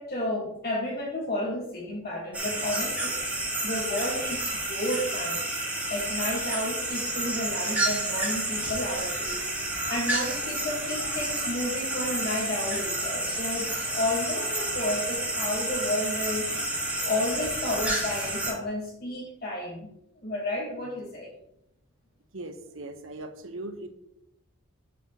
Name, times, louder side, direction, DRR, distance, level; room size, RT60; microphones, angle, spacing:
voice 1, 0.0-3.2 3.6-5.4 5.9-9.4 9.9-19.9 20.2-21.3, left 1 dB, 50° left, -3 dB, 1.6 m, -32 dB
sound 1, 2.3-18.5, right 1 dB, 10° right, 2.2 m, -30 dB
voice 2, 22.3-23.9, right 2 dB, 80° right, 8 dB, 1.1 m, -39 dB
10.5 x 7.2 x 3.0 m, 0.80 s
head